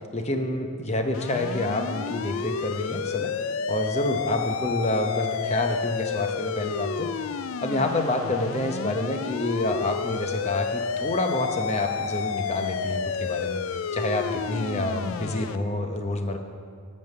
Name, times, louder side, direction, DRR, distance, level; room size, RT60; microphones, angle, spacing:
voice 1, 0.1-3.3 3.7-7.1 7.6-13.6 13.9-16.4, left 1 dB, 30° left, 4 dB, 0.8 m, -28 dB
sound 1, 1.1-15.6, left 6 dB, 75° left, 0.4 m, -31 dB
14.0 x 5.4 x 6.7 m, 2.1 s
head